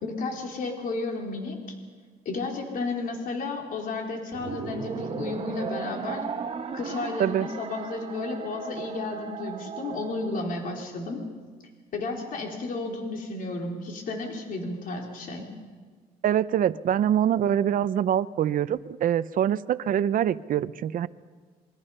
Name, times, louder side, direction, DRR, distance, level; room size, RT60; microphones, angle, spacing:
voice 1, 0.0-1.6 2.3-6.2 6.7-11.2 11.9-15.5, left 3 dB, 55° left, 1 dB, 3.7 m, -32 dB
sound 1, 4.3-10.8, right 6 dB, 35° right, 1.5 m, -36 dB
voice 2, 16.2-21.1, right 10 dB, 55° right, 16 dB, 0.7 m, -24 dB
28.0 x 23.0 x 5.6 m, 1.6 s
cardioid pair, 110°, 17 cm